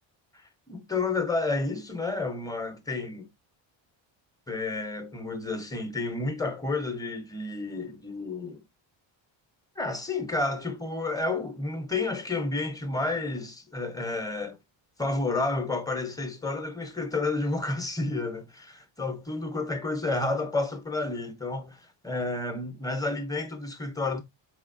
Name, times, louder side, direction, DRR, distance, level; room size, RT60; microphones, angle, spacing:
voice 1, 0.3-3.3 4.5-8.6 9.8-14.6 15.0-24.2, left 3 dB, 10° left, 1.0 m, -31 dB
4.1 x 3.5 x 2.7 m
cardioid pair, 110°, 46 cm